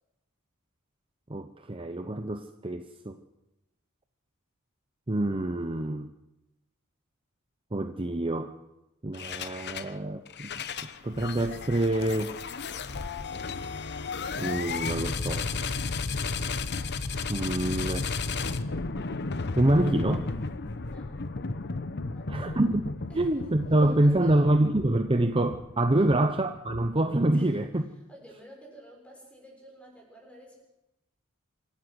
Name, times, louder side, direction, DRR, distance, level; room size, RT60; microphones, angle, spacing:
voice 1, 1.3-3.2 5.1-6.1 7.7-8.5 9.0-10.6 11.0-12.4 14.4-15.5 17.3-18.1 19.6-20.3 22.3-22.8 23.1-27.8, right 1 dB, 25° right, 7 dB, 0.8 m, -26 dB
sound 1, 9.1-9.9 10.3-27.2, left 4 dB, 55° left, 1.0 m, -34 dB
voice 2, 20.8-21.2 22.0-22.6 23.1-24.5 26.0-26.1 27.3-27.7 28.1-30.6, right 1 dB, 5° left, 0 dB, 6.9 m, -52 dB
26.5 x 13.0 x 8.0 m, 0.96 s
head